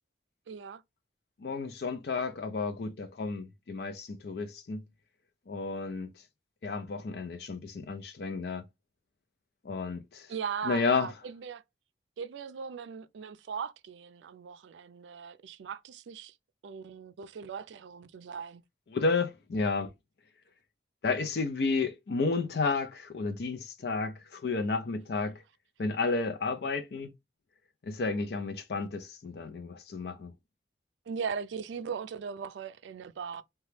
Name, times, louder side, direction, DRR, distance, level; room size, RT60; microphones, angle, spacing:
voice 1, 0.5-0.8 10.3-11.6 12.2-16.3 16.6-18.6 31.1-33.4, right 6 dB, 90° right, 0.4 m, -39 dB
voice 2, 1.4-4.8 5.5-6.1 6.6-8.6 9.6-10.3 10.6-11.1 18.9-19.9 21.0-25.4 25.8-27.1 27.8-30.3, left 4 dB, 60° left, 0.4 m, -32 dB
2.9 x 2.2 x 3.1 m
head